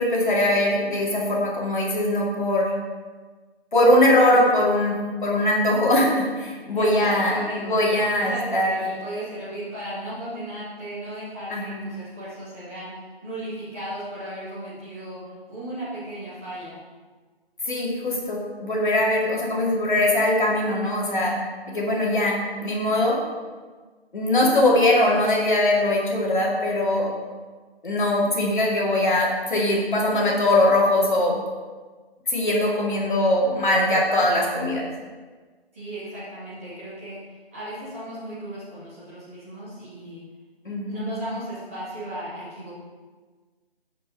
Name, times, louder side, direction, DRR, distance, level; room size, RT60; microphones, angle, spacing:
voice 1, 0.0-2.7 3.7-8.7 11.5-11.9 17.7-21.4 21.7-23.2 24.1-27.1 27.8-31.4 32.3-34.9 40.7-41.1, left 1 dB, 50° left, -3 dB, 2.4 m, -21 dB
voice 2, 6.7-7.9 8.1-15.2 15.5-16.8 35.7-37.2 37.5-40.3 40.9-42.7, right 1 dB, 15° right, -11 dB, 2.0 m, -35 dB
14.0 x 5.3 x 4.0 m, 1.4 s
figure-of-eight pair, 175°, 31 cm